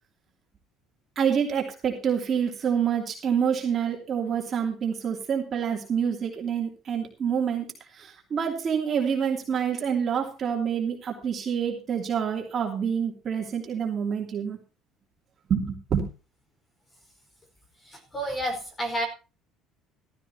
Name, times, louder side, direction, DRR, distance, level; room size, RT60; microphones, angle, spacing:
voice 1, 1.2-7.7 7.9-14.6 15.5-16.0, right 7 dB, 30° right, 0 dB, 2.9 m, -27 dB
voice 2, 17.8-19.1, right 1 dB, 15° left, 5 dB, 4.7 m, -30 dB
14.5 x 14.5 x 2.9 m, 0.32 s
cardioid pair, 170°, 0 cm